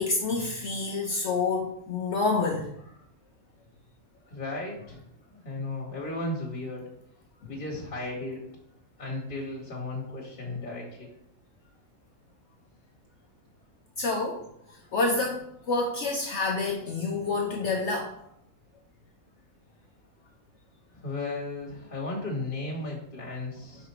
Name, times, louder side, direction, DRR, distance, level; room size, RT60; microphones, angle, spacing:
voice 1, 0.0-2.7 7.4-7.5 14.0-14.4 14.9-18.1, left 3 dB, 60° left, 1 dB, 1.0 m, -28 dB
voice 2, 4.3-5.0 5.3-6.8 7.5-8.4 9.0-11.1 20.9-23.9, left 2 dB, 35° left, -4 dB, 1.9 m, -35 dB
5.0 x 4.9 x 4.4 m, 0.72 s
omnidirectional pair, 1.5 m